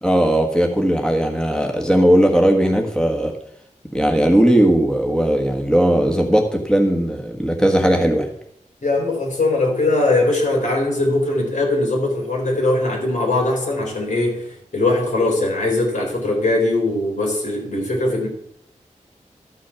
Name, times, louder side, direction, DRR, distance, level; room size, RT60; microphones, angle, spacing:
voice 1, 0.0-3.3 3.9-8.3, right 1 dB, 5° left, 2 dB, 1.4 m, -17 dB
voice 2, 8.8-14.5 14.7-18.3, left 2 dB, 75° left, -1 dB, 3.9 m, -20 dB
13.0 x 6.2 x 5.8 m, 0.72 s
wide cardioid pair, 85°, 13 cm